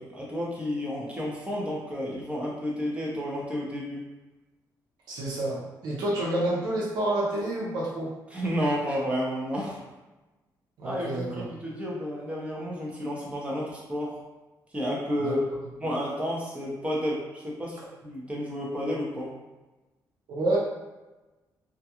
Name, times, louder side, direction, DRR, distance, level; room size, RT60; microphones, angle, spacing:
voice 1, 0.0-4.0 8.3-9.8 10.8-14.2 14.7-15.4 15.8-19.3, equal, 20° right, -4 dB, 0.7 m, -31 dB
voice 2, 5.1-8.1 10.8-11.5 15.2-15.3 20.3-20.6, right 1 dB, 80° right, -4 dB, 0.6 m, -28 dB
2.4 x 2.2 x 2.8 m, 1.1 s
cardioid pair, 110°, 7 cm